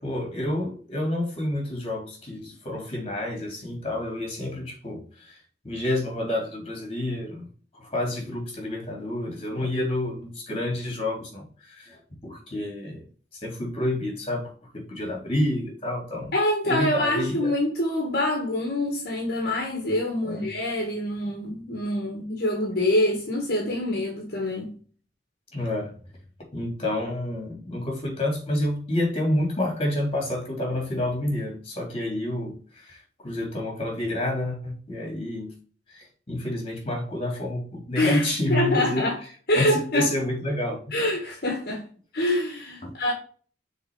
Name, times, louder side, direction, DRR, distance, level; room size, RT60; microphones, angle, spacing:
voice 1, 0.0-7.5 7.7-13.0 13.3-16.3 16.6-17.5 20.2-20.5 25.5-26.0 26.5-35.5 35.9-39.1 39.5-40.8 42.8-42.9, left 1 dB, 35° left, 3.2 m, -29 dB
voice 2, 16.3-24.7 37.9-39.2 39.5-40.1 40.9-41.8 42.1-43.1, left 1 dB, 60° left, 1.7 m, -25 dB
6.6 x 4.1 x 4.7 m
head